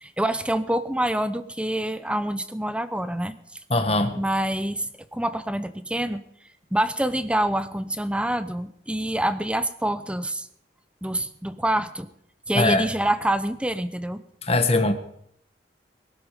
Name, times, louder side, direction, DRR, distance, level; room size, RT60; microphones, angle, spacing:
voice 1, 0.0-3.3 4.1-4.9 5.1-6.2 6.7-10.5 11.0-12.1 12.5-14.2, right 1 dB, 5° right, 12 dB, 0.9 m, -26 dB
voice 2, 3.7-4.2 12.5-12.8 14.4-14.9, left 2 dB, 35° left, 8 dB, 1.6 m, -21 dB
22.0 x 12.5 x 5.2 m, 0.70 s
head